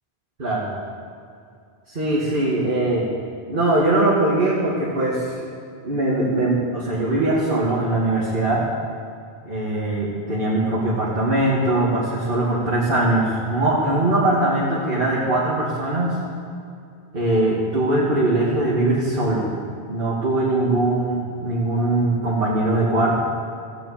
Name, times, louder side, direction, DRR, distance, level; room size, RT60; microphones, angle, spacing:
voice 1, 1.9-3.1 3.5-5.4 5.8-8.7 9.5-16.1 17.1-19.5 19.9-23.1, right 2 dB, 55° right, -6 dB, 2.3 m, -21 dB
16.5 x 8.0 x 8.5 m, 2.4 s
omnidirectional pair, 1.1 m